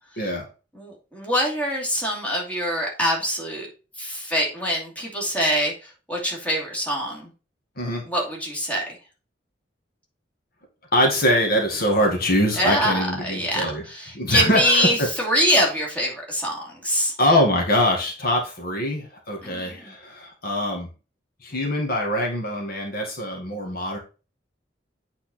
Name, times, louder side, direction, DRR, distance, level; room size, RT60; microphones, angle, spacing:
voice 1, 0.2-0.5 7.8-8.0 10.9-13.9 14.1-15.1 17.2-20.9 21.4-24.0, left 1 dB, 55° left, 1 dB, 2.0 m, -23 dB
voice 2, 0.7-3.7 4.0-7.3 8.1-9.0 12.6-17.1 19.4-19.9, equal, 10° left, -3 dB, 2.6 m, -24 dB
8.7 x 4.2 x 4.3 m, 0.33 s
head